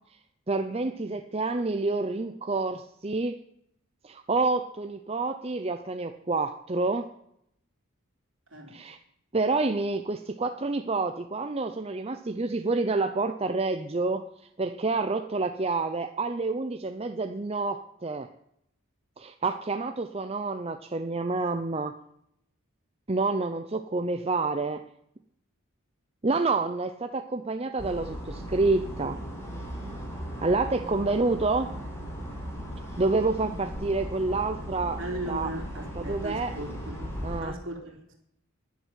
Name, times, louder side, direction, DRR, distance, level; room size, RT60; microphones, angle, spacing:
voice 1, 0.5-3.4 4.0-7.1 8.7-9.0 9.3-14.3 14.6-18.3 19.2-21.9 23.1-24.8 26.2-29.2 30.4-31.8 33.0-35.0 35.3-35.5 35.9-36.6 37.2-37.6, right 3 dB, 30° right, 8 dB, 0.6 m, -28 dB
sound 1, 27.8-37.4, equal, 15° left, 4.2 m, -37 dB
voice 2, 35.0-37.1 37.4-38.2, right 1 dB, 60° right, 2 dB, 3.7 m, -37 dB
11.0 x 11.0 x 9.3 m, 0.74 s
head